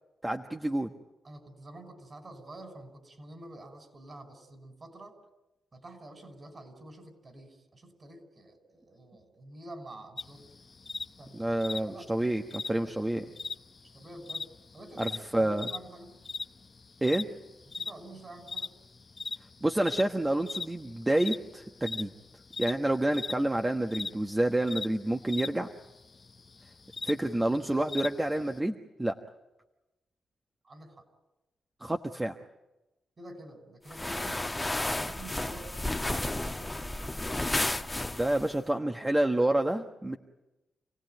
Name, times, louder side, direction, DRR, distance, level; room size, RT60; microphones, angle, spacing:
voice 1, 0.2-0.9 11.3-13.2 15.0-15.7 17.0-17.3 19.6-22.1 22.6-25.7 27.0-29.2 31.8-32.4 38.1-40.2, right 1 dB, 15° right, 4 dB, 1.3 m, -28 dB
voice 2, 1.2-5.2 5.7-10.4 11.2-11.6 11.9-12.3 12.6-12.9 13.9-14.5 14.7-16.2 17.7-18.7 30.6-31.0 33.2-37.7, right 1 dB, 40° right, 7 dB, 6.0 m, -48 dB
sound 1, 10.2-28.6, left 3 dB, 40° left, 1.0 m, -41 dB
sound 2, 33.9-38.5, left 2 dB, 15° left, 1.2 m, -32 dB
28.0 x 17.0 x 9.3 m, 1.0 s
cardioid pair, 65°, 0 cm